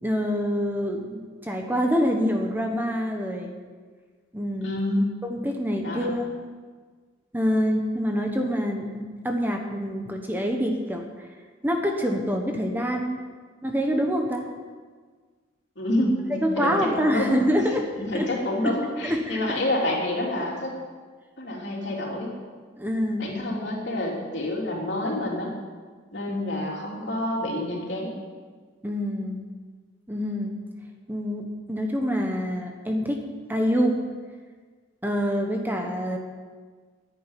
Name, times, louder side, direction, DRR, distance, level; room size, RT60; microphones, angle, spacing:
voice 1, 0.0-3.5 4.3-4.7 5.2-6.3 7.3-11.3 11.6-13.2 13.6-14.5 16.3-17.8 18.1-18.3 18.6-18.7 19.0-19.6 22.8-23.3 28.8-29.4 30.1-30.6 31.1-33.2 33.5-34.0 35.0-36.2, equal, 10° right, 2 dB, 1.2 m, -26 dB
voice 2, 4.6-5.1 5.8-6.1 15.7-17.4 17.9-20.7 21.4-22.3 23.2-25.6 26.1-28.2, left 1 dB, 65° left, -2 dB, 3.5 m, -28 dB
10.0 x 10.0 x 9.2 m, 1.5 s
head